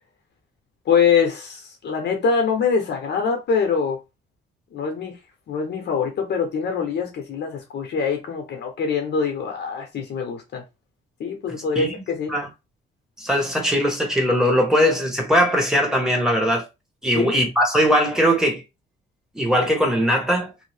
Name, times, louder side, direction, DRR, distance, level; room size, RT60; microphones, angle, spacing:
voice 1, 0.9-4.0 4.7-5.2 5.5-10.6 11.2-12.3 17.1-17.4, left 6 dB, 60° left, 0.7 m, -24 dB
voice 2, 13.2-16.7 17.0-18.6 19.3-20.5, equal, 5° right, 1.1 m, -20 dB
2.6 x 2.0 x 3.2 m
cardioid pair, 90°, 20 cm